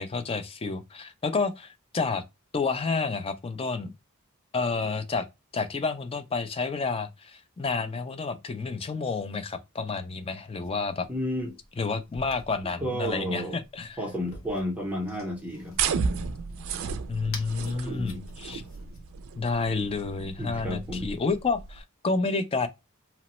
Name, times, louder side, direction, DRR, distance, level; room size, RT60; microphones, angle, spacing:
voice 1, 0.0-2.2 2.5-3.9 4.5-5.2 5.5-11.1 11.8-14.0 17.1-18.6 19.4-22.7, left 4 dB, 25° left, 0.4 m, -30 dB
sound 1, 10.6-19.1, left 2 dB, 65° left, 0.8 m, -49 dB
voice 2, 11.1-11.6 12.8-13.6 14.0-15.8 17.8-18.3 20.4-21.1, equal, 5° right, 0.7 m, -32 dB
sound 2, 15.7-21.8, right 5 dB, 65° right, 0.3 m, -33 dB
2.9 x 2.0 x 2.9 m
head